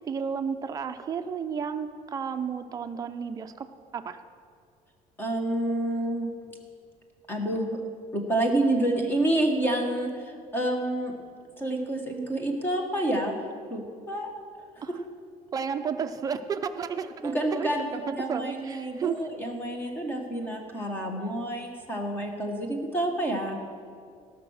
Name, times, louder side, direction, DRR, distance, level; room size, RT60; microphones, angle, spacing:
voice 1, 0.1-3.7 3.9-4.2 14.8-14.9 15.5-18.0 18.3-19.3 20.8-20.9, right 6 dB, 25° right, 7 dB, 0.5 m, -32 dB
voice 2, 5.2-6.3 7.3-7.8 8.1-11.1 11.6-13.4 13.7-14.3 17.2-17.8 18.1-23.6, right 1 dB, 15° left, 2 dB, 1.3 m, -28 dB
17.5 x 6.0 x 6.4 m, 2.2 s
cardioid pair, 180°, 15 cm